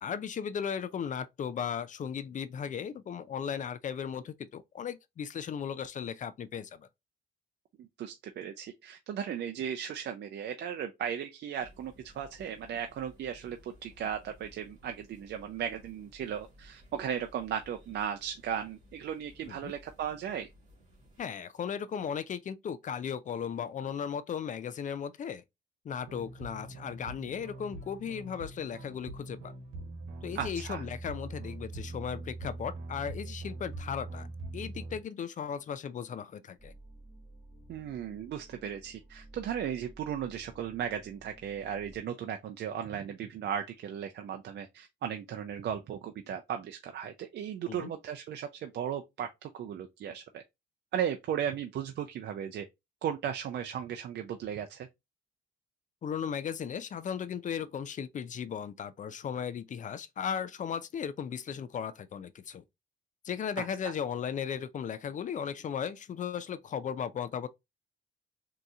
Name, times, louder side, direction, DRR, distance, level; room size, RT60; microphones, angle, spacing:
voice 1, 0.0-6.9 19.6-19.7 21.2-25.4 25.9-29.5 30.2-34.3 34.5-36.7 47.7-47.9 56.0-62.6 63.3-67.5, left 7 dB, 40° left, 0.4 m, -36 dB
voice 2, 7.8-20.5 30.3-30.8 37.7-50.4 50.9-52.7 53.0-54.9 63.6-63.9, right 9 dB, 60° right, 0.4 m, -36 dB
sound 1, 11.6-21.2, equal, 40° right, 1.6 m, -58 dB
sound 2, 26.0-35.0, right 2 dB, 85° right, 1.0 m, -42 dB
sound 3, 36.6-42.0, right 1 dB, 10° right, 1.8 m, -54 dB
3.8 x 2.8 x 2.4 m
cardioid pair, 90°, 20 cm